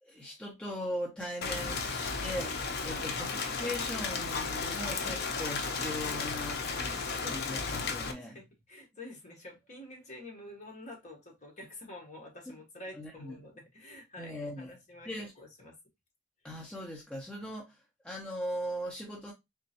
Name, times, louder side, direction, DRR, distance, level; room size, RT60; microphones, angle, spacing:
voice 1, 0.0-6.6 6.9-7.0 7.3-8.4 12.9-13.4 14.2-14.8 15.1-15.3 16.4-19.3, equal, 5° left, 0.8 m, -39 dB
Rain, 1.4-8.1, left 4 dB, 50° left, 0.6 m, -34 dB
voice 2, 6.7-7.4 8.1-15.1 15.4-15.8, left 1 dB, 35° left, 1.1 m, -48 dB
3.6 x 3.2 x 2.8 m
head